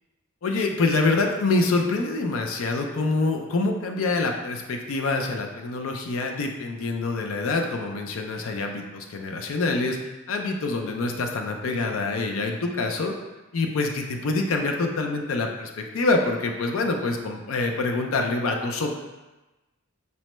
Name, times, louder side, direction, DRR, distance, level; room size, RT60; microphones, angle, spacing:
voice 1, 0.4-10.0 10.3-13.2 13.5-18.9, left 3 dB, 70° left, 3 dB, 0.4 m, -26 dB
5.4 x 2.1 x 3.0 m, 1.1 s
head